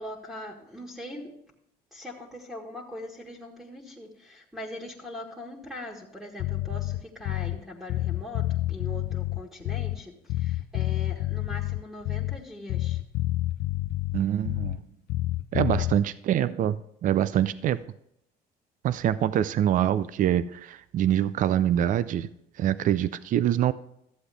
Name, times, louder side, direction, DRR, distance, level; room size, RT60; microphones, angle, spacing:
voice 1, 0.0-1.3 1.9-13.0 15.7-15.9 17.4-17.5, left 1 dB, ahead, 1.7 m, -41 dB
Bass guitar, 6.4-7.6 7.9-10.0 10.3-12.4 12.7-14.8 15.1-16.0, left 16 dB, 75° left, 0.4 m, -29 dB
voice 2, 14.1-14.8 15.5-17.8 18.8-22.3 22.6-23.7, right 11 dB, 50° right, 0.5 m, -25 dB
13.0 x 7.9 x 3.4 m
cardioid pair, 110°, 17 cm